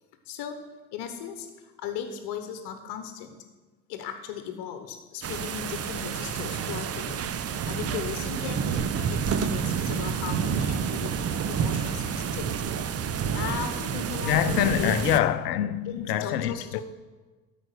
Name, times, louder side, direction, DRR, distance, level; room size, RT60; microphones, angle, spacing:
voice 1, 0.2-3.4 3.9-7.3 7.6-12.7 13.3-15.0 15.8-16.8, left 8 dB, 55° left, 1.2 m, -37 dB
sound 1, 5.2-15.2, right 7 dB, 30° right, 0.7 m, -29 dB
voice 2, 14.2-16.8, left 11 dB, 85° left, 0.6 m, -25 dB
13.0 x 5.1 x 6.6 m
hypercardioid pair, 65°, 47 cm